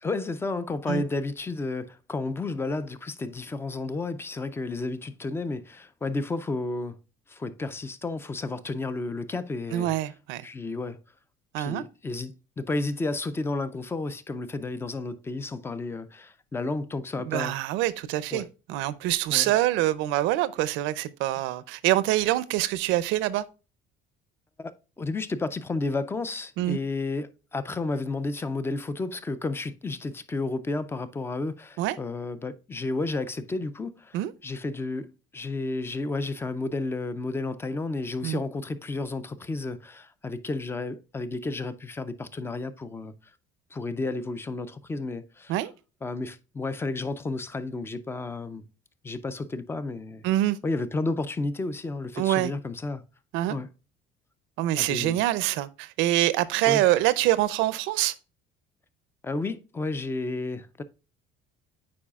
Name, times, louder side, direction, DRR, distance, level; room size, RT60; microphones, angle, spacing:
voice 1, 0.0-7.0 7.3-9.9 10.4-11.0 11.6-17.5 18.3-18.5 19.3-19.5 24.6-34.2 34.4-43.1 43.7-45.5 46.0-48.6 49.0-50.2 50.6-53.0 53.5-53.7 54.8-55.2 56.7-56.8 59.2-60.8, left 3 dB, 10° left, 0.3 m, -32 dB
voice 2, 9.7-10.5 11.5-11.8 17.2-23.4 26.6-26.8 31.8-32.0 34.1-34.3 38.2-38.4 45.5-45.7 50.2-50.6 52.2-52.5 53.3-53.6 54.6-58.2, right 15 dB, 75° right, 0.5 m, -25 dB
8.5 x 4.8 x 2.3 m
cardioid pair, 150°, 20 cm